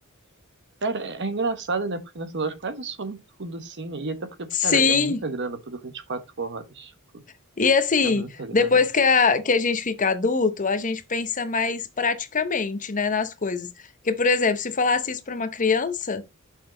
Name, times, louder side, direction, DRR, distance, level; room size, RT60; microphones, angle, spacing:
voice 1, 0.8-6.9 8.0-8.8, right 3 dB, 50° right, 1.0 m, -31 dB
voice 2, 4.6-5.2 7.6-8.2 8.5-13.7 14.0-16.2, left 4 dB, 35° left, 0.8 m, -22 dB
6.2 x 5.8 x 3.8 m
head